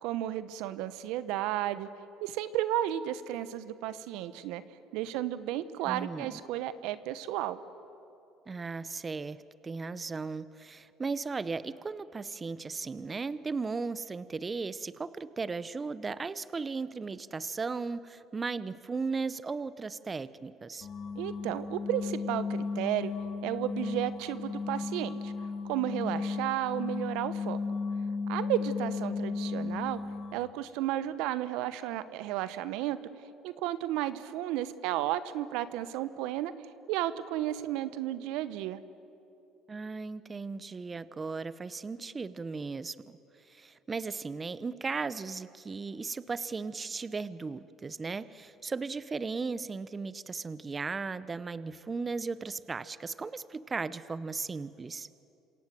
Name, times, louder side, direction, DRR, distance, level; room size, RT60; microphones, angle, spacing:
voice 1, 0.0-1.9 2.2-4.6 4.9-7.6 21.2-23.1 23.4-25.3 25.6-27.6 28.3-30.0 30.3-33.0 33.4-36.5 36.9-38.8, right 13 dB, 75° right, 14 dB, 1.0 m, -33 dB
voice 2, 5.8-6.4 8.5-20.9 39.7-43.0 43.4-55.1, right 4 dB, 30° right, 15 dB, 0.9 m, -36 dB
sound 1, 20.8-30.5, left 4 dB, 50° left, 2.2 m, -35 dB
27.0 x 27.0 x 7.7 m, 2.8 s
supercardioid pair, 75°, 0 cm